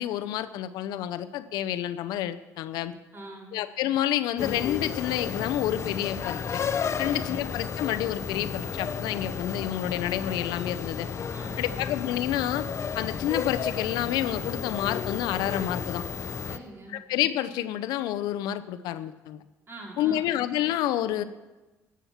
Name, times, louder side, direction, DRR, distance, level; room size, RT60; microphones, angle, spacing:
voice 1, 0.0-2.9 3.5-6.6 7.0-11.1 11.6-12.7 12.9-16.0 16.9-19.4 20.0-21.2, left 12 dB, 85° left, 12 dB, 0.6 m, -29 dB
voice 2, 3.1-3.6 7.0-7.4 11.3-11.9 16.5-17.0 19.7-20.3, right 2 dB, 35° right, 0 dB, 3.5 m, -43 dB
sound 1, 4.4-16.6, left 6 dB, 45° left, 0.6 m, -33 dB
11.5 x 7.1 x 7.1 m, 1.1 s
cardioid pair, 90°, 7 cm